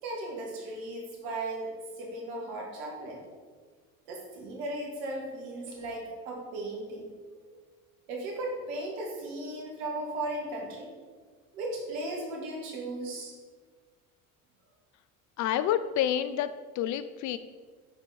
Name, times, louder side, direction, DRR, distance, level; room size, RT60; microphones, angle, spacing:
voice 1, 0.0-3.2 4.1-7.1 8.1-10.9 11.5-13.3, right 2 dB, 70° right, -1 dB, 2.1 m, -36 dB
voice 2, 15.4-16.5 16.8-17.4, left 10 dB, 45° left, 13 dB, 0.4 m, -28 dB
9.3 x 4.5 x 4.2 m, 1.5 s
hypercardioid pair, 65°, 43 cm